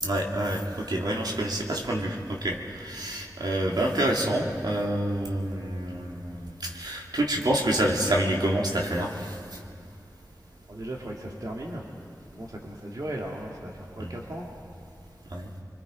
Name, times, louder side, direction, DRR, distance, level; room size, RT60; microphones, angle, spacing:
voice 1, 0.0-9.4 14.0-14.2 15.3-15.5, right 1 dB, 75° right, -1 dB, 2.5 m, -27 dB
voice 2, 10.7-11.8 12.3-14.5, right 1 dB, 55° right, -1 dB, 2.2 m, -37 dB
28.5 x 22.5 x 5.1 m, 2.3 s
wide cardioid pair, 60°, 7 cm